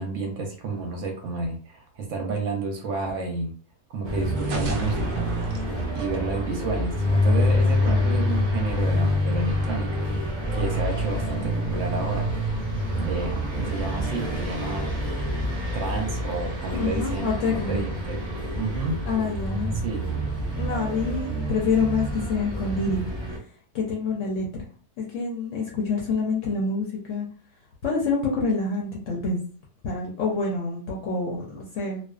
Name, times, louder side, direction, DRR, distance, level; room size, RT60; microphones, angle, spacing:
voice 1, 0.0-3.5 3.9-5.3 5.9-10.0 10.5-12.3 13.0-14.9 15.7-19.0 19.8-20.0, right 3 dB, 65° right, 2 dB, 0.9 m, -30 dB
sound 1, 4.0-23.4, left 1 dB, 25° right, 0.6 m, -27 dB
sound 2, 4.4-7.2, right 2 dB, 85° right, 0.5 m, -34 dB
voice 2, 16.7-17.8 19.0-19.7 20.5-23.2 23.7-24.7 25.0-27.3 27.8-29.4 29.8-32.0, left 4 dB, 65° left, -2 dB, 0.9 m, -27 dB
2.5 x 2.3 x 2.3 m, 0.43 s
omnidirectional pair, 1.6 m